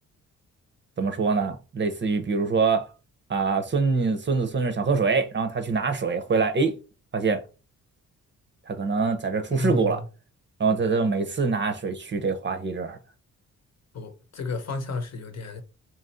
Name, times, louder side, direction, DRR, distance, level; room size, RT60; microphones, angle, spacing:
voice 1, 1.0-2.9 3.3-6.8 7.1-7.4 8.7-10.0 10.6-13.0, right 4 dB, 35° right, 0.7 m, -24 dB
voice 2, 9.5-10.0 13.9-15.6, left 3 dB, 50° left, 0.9 m, -32 dB
2.9 x 2.5 x 4.1 m
cardioid pair, 75°, 32 cm